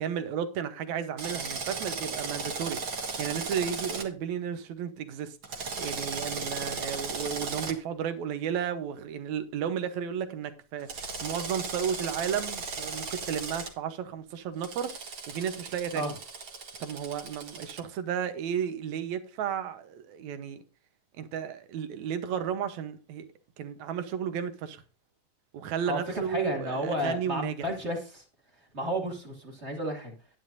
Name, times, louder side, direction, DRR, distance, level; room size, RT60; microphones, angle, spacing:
voice 1, 0.0-5.4 5.8-14.9 15.3-16.0 16.8-20.6 21.2-23.3 23.6-24.8 25.5-27.7, right 8 dB, 65° right, 2.1 m, -33 dB
Drill, 1.2-4.1 5.4-7.7 10.9-13.7 14.6-17.8, right 4 dB, 45° right, 1.9 m, -36 dB
voice 2, 26.3-28.2 28.7-30.1, equal, 20° right, 2.2 m, -32 dB
11.5 x 10.5 x 2.7 m
omnidirectional pair, 3.9 m